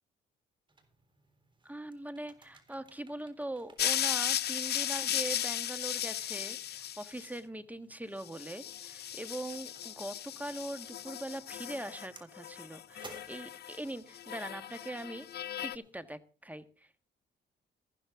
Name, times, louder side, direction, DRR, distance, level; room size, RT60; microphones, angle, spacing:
Office environment, 0.7-15.9, right 2 dB, 25° right, 3.8 m, -60 dB
voice 1, 1.6-17.1, right 1 dB, 10° right, 12 dB, 1.4 m, -42 dB
sound 1, 3.8-7.3 8.3-12.1 12.3-13.8 14.1-15.8, left 11 dB, 55° left, 0.5 m, -36 dB
14.5 x 13.0 x 3.6 m, 0.39 s
cardioid pair, 90°, 20 cm